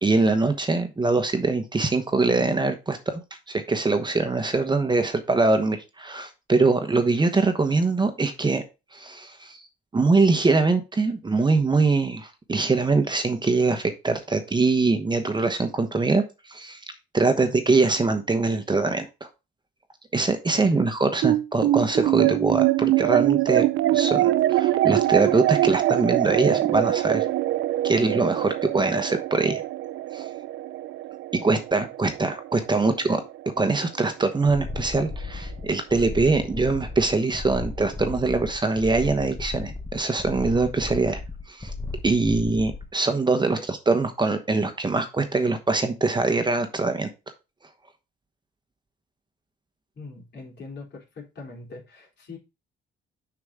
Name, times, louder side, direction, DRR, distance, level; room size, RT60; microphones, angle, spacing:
voice 1, 0.0-3.2 3.5-8.6 8.9-9.6 9.9-16.8 17.1-19.1 20.1-23.6 23.9-24.2 24.5-27.3 27.8-29.6 30.1-30.3 31.3-33.2 33.6-41.2 41.5-41.7 42.0-47.1, right 3 dB, 20° right, 7 dB, 1.1 m, -23 dB
voice 2, 20.5-20.9 24.0-24.1 32.9-33.2 43.5-43.7 49.9-52.4, left 3 dB, 60° left, 0 dB, 3.5 m, -41 dB
sound 1, 21.2-33.8, right 15 dB, 75° right, 0.4 m, -24 dB
sound 2, 34.5-42.9, left 3 dB, 15° left, 0.9 m, -35 dB
6.4 x 6.0 x 3.6 m, 0.27 s
cardioid pair, 90°, 20 cm